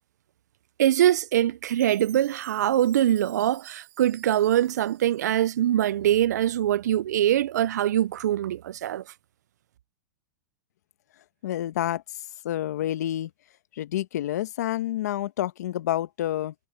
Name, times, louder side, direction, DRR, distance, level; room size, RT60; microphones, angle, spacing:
voice 1, 0.8-9.0, right 12 dB, 85° right, 0.4 m, -23 dB
Chime, 1.7-6.0, right 21 dB, 50° right, 1.7 m, -52 dB
voice 2, 11.4-12.0 12.4-13.3 13.7-16.5, left 13 dB, 75° left, 1.1 m, -28 dB
supercardioid pair, 140°, 9 cm